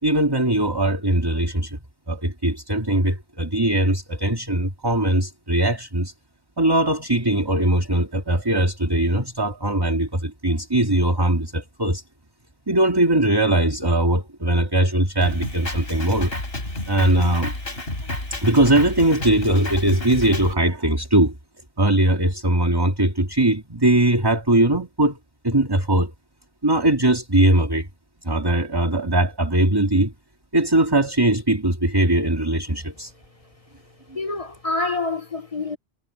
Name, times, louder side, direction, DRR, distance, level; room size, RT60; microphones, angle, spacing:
voice 1, 0.0-1.8 2.1-6.1 6.6-12.0 12.7-16.3 16.9-17.5 18.4-21.4 21.8-25.2 25.4-26.1 26.6-27.9 28.2-30.1 30.5-33.1, right 1 dB, 20° right, 2.3 m, -20 dB
Drum kit, 15.2-20.5, left 1 dB, 65° left, 5.0 m, -31 dB
voice 2, 34.1-35.8, left 3 dB, 35° left, 1.2 m, -27 dB
omnidirectional pair, 1.1 m